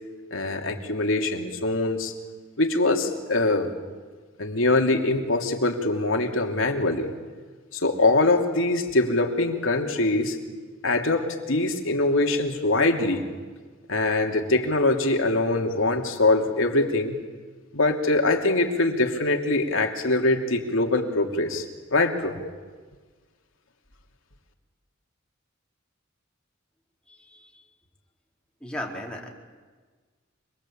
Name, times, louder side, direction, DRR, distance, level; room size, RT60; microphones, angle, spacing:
voice 1, 0.3-2.1 2.6-3.7 4.4-7.1 7.7-10.4 10.8-13.3 13.9-17.2 17.7-21.6 21.9-22.4, left 2 dB, 80° left, 3 dB, 2.8 m, -23 dB
voice 2, 27.1-27.6 28.6-29.3, left 1 dB, 5° left, -1 dB, 4.3 m, -36 dB
25.5 x 21.5 x 8.7 m, 1.5 s
head